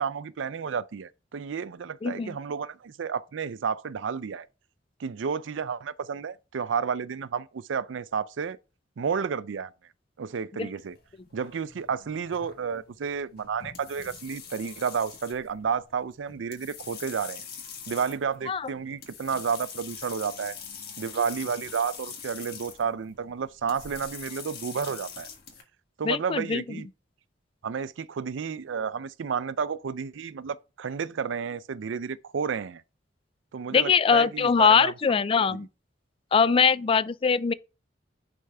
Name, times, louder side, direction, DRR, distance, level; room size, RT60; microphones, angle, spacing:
voice 1, 0.0-4.5 5.0-8.6 9.0-9.7 10.2-11.0 11.3-17.4 17.9-20.6 21.0-25.3 26.0-26.9 27.6-32.8 33.5-34.9 35.5-35.6, right 6 dB, 85° right, 0.4 m, -31 dB
voice 2, 2.0-2.4 10.6-10.7 18.5-18.7 26.0-26.6 33.7-35.7 36.3-37.5, left 6 dB, 30° left, 0.3 m, -22 dB
sound 1, 10.8-25.6, left 6 dB, 55° left, 1.6 m, -44 dB
10.0 x 4.4 x 3.4 m
head